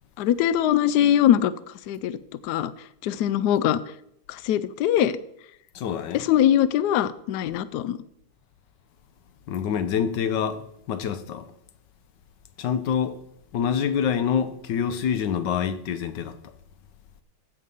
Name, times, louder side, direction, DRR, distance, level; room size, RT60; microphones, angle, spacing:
voice 1, 0.2-1.5 1.9-2.2 2.4-2.7 3.0-3.8 4.3-5.2 6.1-8.0, left 11 dB, 85° left, 0.9 m, -22 dB
voice 2, 5.7-6.2 9.5-11.5 12.6-13.2 13.5-16.4, left 8 dB, 65° left, 1.3 m, -26 dB
15.0 x 5.5 x 5.4 m
omnidirectional pair, 2.3 m